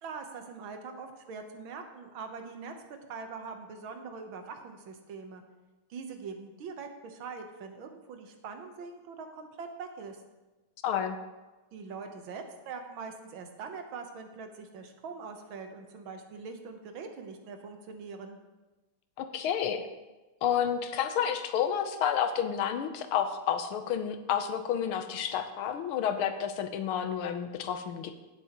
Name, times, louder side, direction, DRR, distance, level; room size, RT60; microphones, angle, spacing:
voice 1, 0.0-2.7 3.1-5.4 5.9-10.2 11.7-18.4, right 5 dB, 75° right, 5 dB, 1.8 m, -43 dB
voice 2, 10.8-11.2 19.2-19.8 20.4-28.2, left 8 dB, 85° left, 9 dB, 1.7 m, -30 dB
15.5 x 7.3 x 3.0 m, 1.1 s
omnidirectional pair, 2.3 m